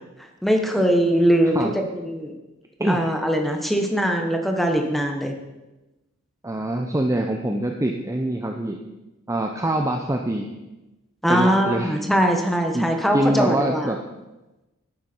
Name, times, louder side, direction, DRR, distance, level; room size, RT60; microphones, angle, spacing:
voice 1, 0.4-1.6 1.9-2.3 2.9-5.3 11.2-13.9, equal, ahead, 3 dB, 1.2 m, -21 dB
voice 2, 6.4-8.8 9.3-10.5 11.3-11.9 12.7-12.8 13.1-14.0, right 1 dB, 15° right, 3 dB, 0.6 m, -24 dB
11.5 x 9.5 x 4.5 m, 1.0 s
head